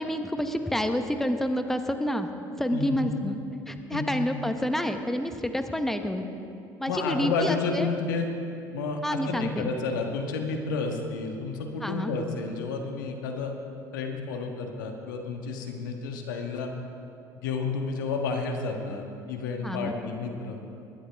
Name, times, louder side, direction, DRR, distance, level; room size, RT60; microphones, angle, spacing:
voice 1, 0.0-2.3 2.6-3.4 3.7-6.2 6.8-7.9 9.0-9.7 11.8-12.1 19.6-19.9, left 1 dB, 5° left, 7 dB, 1.0 m, -28 dB
voice 2, 6.9-8.3 8.7-13.5 13.9-16.7 17.4-20.7, left 4 dB, 85° left, 3 dB, 1.4 m, -31 dB
20.0 x 11.5 x 3.5 m, 2.7 s
hypercardioid pair, 70°, 10 cm